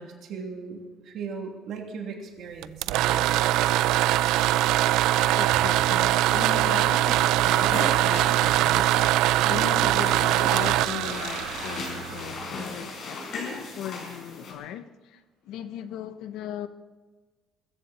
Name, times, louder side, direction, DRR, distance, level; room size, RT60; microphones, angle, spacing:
voice 1, 0.0-3.4, right 5 dB, 55° right, 2.8 m, -38 dB
sound 1, 2.6-12.4, right 14 dB, 90° right, 0.4 m, -22 dB
voice 2, 5.3-16.7, left 10 dB, 70° left, 0.9 m, -38 dB
sound 2, 6.8-14.5, left 3 dB, 40° left, 4.7 m, -37 dB
23.0 x 14.5 x 4.3 m
cardioid pair, 180°, 0 cm